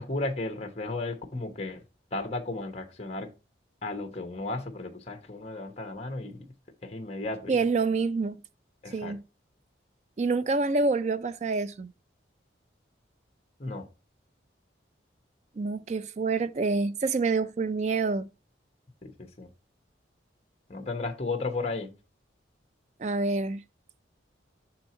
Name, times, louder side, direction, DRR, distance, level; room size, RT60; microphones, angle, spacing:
voice 1, 0.0-1.8 2.1-3.3 3.8-6.5 6.8-7.5 8.8-9.2 13.6-13.9 19.0-19.5 20.7-21.9, left 2 dB, 35° left, 0.9 m, -34 dB
voice 2, 7.5-8.4 8.9-9.2 10.2-11.9 15.6-18.3 23.0-23.6, right 3 dB, 35° right, 0.3 m, -27 dB
6.4 x 4.5 x 4.2 m
head